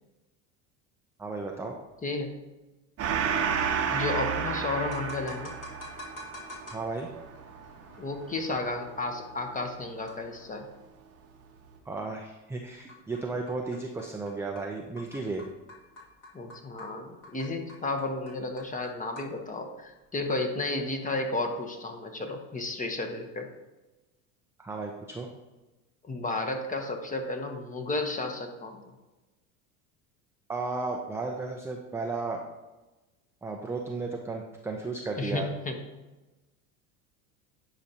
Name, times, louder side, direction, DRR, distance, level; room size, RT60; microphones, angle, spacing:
voice 1, 1.2-1.8 6.7-7.1 11.9-15.4 24.6-25.3 30.5-32.4 33.4-35.5, right 3 dB, 5° right, 0 dB, 0.5 m, -34 dB
voice 2, 2.0-2.4 3.9-5.5 8.0-10.7 16.3-23.5 26.0-28.8 35.2-35.8, left 2 dB, 20° left, 4 dB, 1.0 m, -32 dB
Gong, 3.0-9.9, right 7 dB, 35° right, 0.9 m, -32 dB
sound 1, 4.9-20.9, left 1 dB, 45° left, 2.3 m, -50 dB
10.0 x 5.0 x 2.9 m, 1.1 s
supercardioid pair, 100°, 44 cm